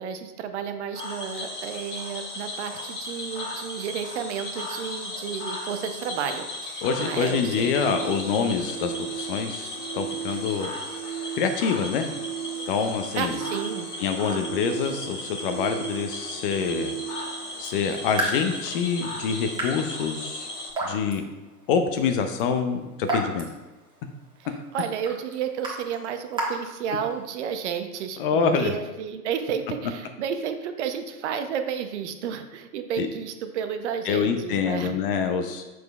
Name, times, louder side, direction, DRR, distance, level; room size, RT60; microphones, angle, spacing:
voice 1, 0.0-7.7 13.2-13.9 24.4-34.9, right 7 dB, 50° right, 8 dB, 0.7 m, -32 dB
Cricket / Frog, 0.9-20.7, left 1 dB, 80° left, 1.8 m, -36 dB
voice 2, 6.8-9.7 9.9-10.7 11.4-12.0 12.7-13.4 14.0-16.9 17.6-20.5 20.8-21.2 21.7-23.4 28.2-28.8 33.0-33.1 34.0-35.6, left 6 dB, 35° left, 7 dB, 0.6 m, -26 dB
sound 1, 7.0-18.8, right 11 dB, 75° right, 1.7 m, -37 dB
Raindrop / Drip, 17.5-27.4, right 1 dB, 10° right, 1.3 m, -35 dB
7.0 x 6.1 x 2.4 m, 1.1 s
figure-of-eight pair, 105°, 46 cm